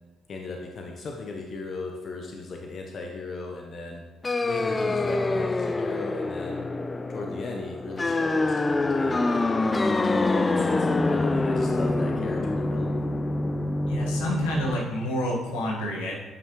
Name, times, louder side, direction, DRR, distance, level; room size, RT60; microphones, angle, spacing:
voice 1, 0.3-4.0 4.4-6.7 7.1-9.9 10.4-13.1, left 3 dB, 55° left, 1 dB, 0.9 m, -37 dB
sound 1, 4.2-14.7, left 2 dB, 30° left, 0.4 m, -25 dB
voice 2, 13.9-16.1, equal, 85° left, -3 dB, 1.6 m, -29 dB
11.0 x 5.6 x 3.1 m, 1.2 s
hypercardioid pair, 55°, 0 cm